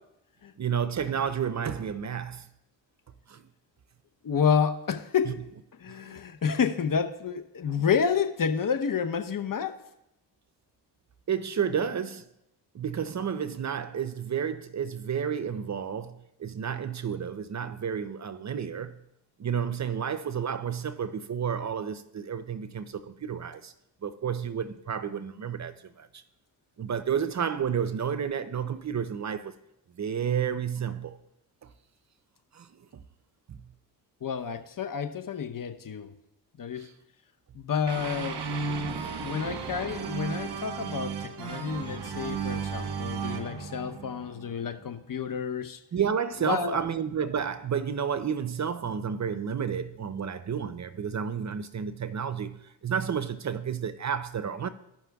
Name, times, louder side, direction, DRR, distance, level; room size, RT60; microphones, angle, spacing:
voice 1, 0.6-2.5 3.3-3.4 5.3-5.4 6.0-6.1 11.3-12.2 12.7-19.0 19.4-23.7 24.0-26.1 26.8-29.5 30.0-31.2 32.5-32.7 32.9-33.0 33.5-33.6 36.8-36.9 45.9-54.7, right 7 dB, 40° right, 0.6 m, -31 dB
voice 2, 4.2-5.4 5.8-9.8 34.2-36.1 36.6-36.9 37.5-38.4 39.2-45.8 46.4-46.8, left 7 dB, 50° left, 0.8 m, -29 dB
sound 1, 37.9-44.8, right 5 dB, 60° right, 1.1 m, -34 dB
16.0 x 5.9 x 2.3 m
supercardioid pair, 55°, 44 cm